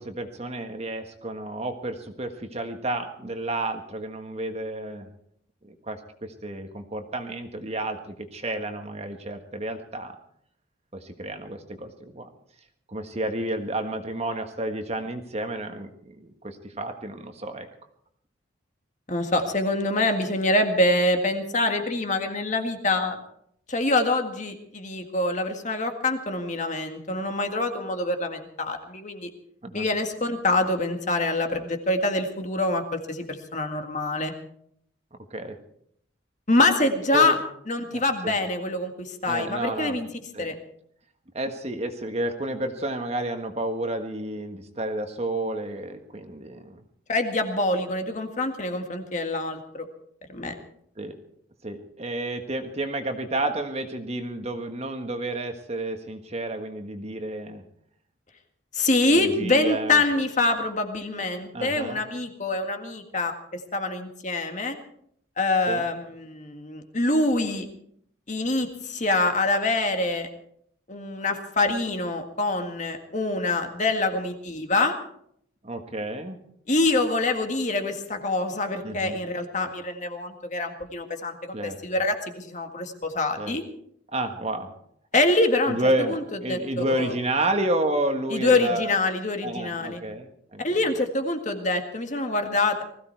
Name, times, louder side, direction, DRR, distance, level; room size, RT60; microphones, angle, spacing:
voice 1, 0.0-5.1 5.6-10.1 10.9-12.3 12.9-17.7 29.6-29.9 35.3-35.5 37.1-37.4 37.9-38.3 39.2-40.0 40.3-40.5 41.3-46.8 51.0-51.2 51.6-57.6 59.2-60.0 61.5-62.0 65.7-65.9 75.6-76.4 78.8-79.2 81.5-81.8 83.4-83.6 84.1-84.7 85.7-88.9 89.4-90.6, right 1 dB, 30° right, 6 dB, 1.5 m, -31 dB
voice 2, 19.1-23.2 23.7-29.3 29.7-34.3 36.5-37.4 37.7-40.1 40.4-40.6 47.1-49.9 50.3-50.5 58.7-64.8 65.4-67.7 68.3-70.3 70.9-74.9 76.7-83.6 85.1-85.8 86.1-86.2 86.5-87.1 88.3-90.0 90.6-92.8, left 2 dB, 35° left, 5 dB, 1.8 m, -25 dB
20.0 x 15.5 x 4.6 m, 0.69 s
head